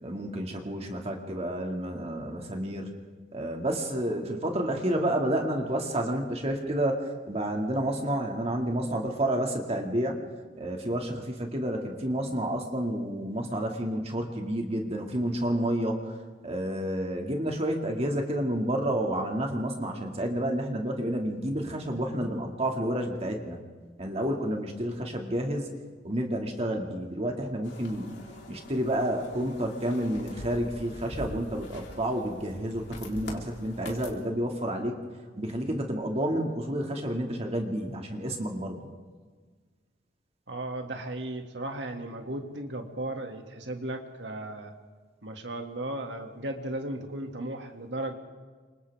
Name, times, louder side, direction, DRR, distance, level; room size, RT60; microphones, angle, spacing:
voice 1, 0.0-2.9 3.3-10.2 10.6-16.1 16.4-23.6 24.0-25.7 26.0-28.2 28.5-35.0 35.4-38.9, right 1 dB, 35° right, 2 dB, 2.4 m, -30 dB
sound 1, 27.6-34.1, left 1 dB, 75° left, 3.9 m, -44 dB
voice 2, 40.5-44.7 45.2-48.1, right 1 dB, 75° right, 3 dB, 2.5 m, -35 dB
29.5 x 25.5 x 3.7 m, 1.5 s
head